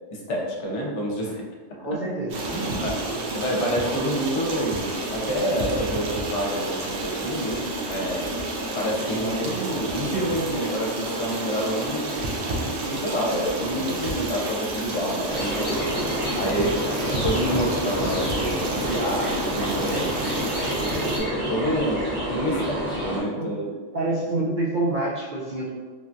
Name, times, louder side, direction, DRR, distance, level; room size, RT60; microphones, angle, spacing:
voice 1, 0.1-1.4 2.5-8.3 8.7-16.8 17.1-23.7, equal, 70° left, -2 dB, 0.9 m, -28 dB
voice 2, 1.8-2.3 2.6-2.7 9.2-9.6 23.3-23.5 23.9-25.7, right 2 dB, 55° right, -6 dB, 0.5 m, -27 dB
Stream, 2.3-21.2, right 2 dB, 80° right, 1.0 m, -30 dB
sound 1, 15.3-23.2, equal, 10° left, 0.8 m, -28 dB
3.3 x 2.2 x 2.5 m, 1.4 s
omnidirectional pair, 1.3 m